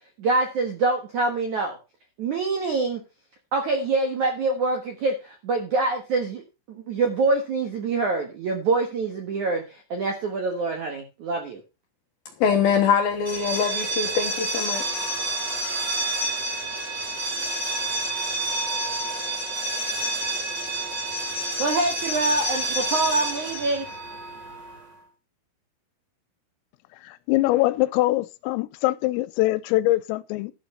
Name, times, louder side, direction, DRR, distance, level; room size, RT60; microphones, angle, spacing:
voice 1, 0.2-1.8 2.2-3.0 3.5-6.4 6.7-11.6 21.6-23.9, right 3 dB, 65° right, 1.9 m, -25 dB
voice 2, 12.4-14.8, left 7 dB, 70° left, 2.3 m, -23 dB
sound 1, 13.2-24.9, right 2 dB, 30° right, 2.1 m, -29 dB
voice 3, 27.0-30.5, left 17 dB, 90° left, 3.4 m, -23 dB
12.0 x 6.9 x 5.6 m
omnidirectional pair, 5.8 m